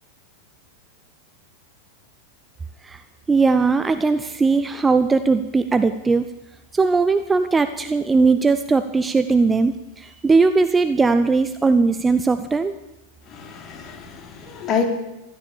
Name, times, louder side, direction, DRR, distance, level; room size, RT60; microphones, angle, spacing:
voice 1, 3.3-6.3 6.7-12.8, right 4 dB, 15° right, 10 dB, 0.7 m, -19 dB
voice 2, 13.2-14.9, left 6 dB, 30° left, 4 dB, 3.0 m, -27 dB
16.0 x 12.5 x 7.1 m, 0.93 s
figure-of-eight pair, 90°, 0 cm